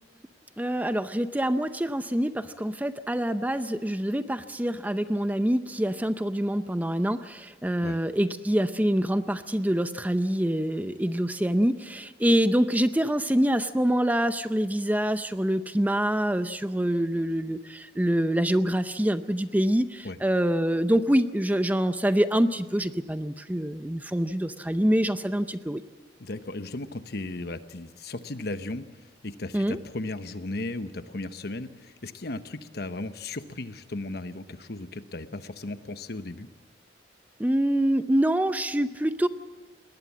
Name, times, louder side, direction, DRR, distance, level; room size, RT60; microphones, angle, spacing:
voice 1, 0.6-25.8 29.5-29.8 37.4-39.3, equal, 10° right, 11 dB, 0.6 m, -25 dB
voice 2, 26.2-28.9 29.2-36.5, left 2 dB, 60° left, 10 dB, 1.0 m, -36 dB
21.5 x 19.0 x 7.4 m, 1.2 s
head